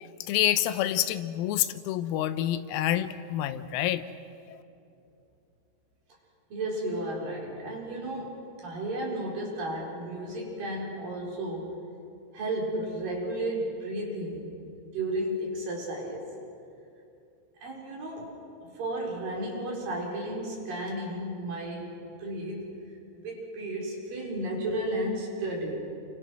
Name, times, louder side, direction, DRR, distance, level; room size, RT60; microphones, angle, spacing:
voice 1, 0.0-4.0 4.5-4.6, left 12 dB, 90° left, 11 dB, 3.7 m, -28 dB
voice 2, 6.5-11.8 12.3-16.3 17.6-22.7 23.1-25.8, right 1 dB, 45° right, -2 dB, 5.7 m, -33 dB
29.0 x 26.5 x 6.2 m, 2.6 s
omnidirectional pair, 6.0 m